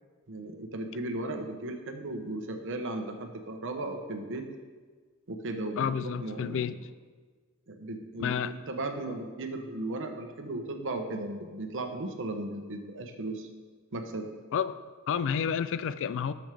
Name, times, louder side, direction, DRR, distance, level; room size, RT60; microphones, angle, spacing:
voice 1, 0.3-4.5 5.3-6.8 7.7-13.5 13.9-14.3, right 2 dB, 60° right, 5 dB, 1.0 m, -36 dB
voice 2, 5.8-6.8 8.2-8.5 9.1-9.2 14.5-14.8 15.1-16.3, left 7 dB, 60° left, 14 dB, 0.4 m, -30 dB
12.0 x 7.2 x 3.5 m, 1.5 s
head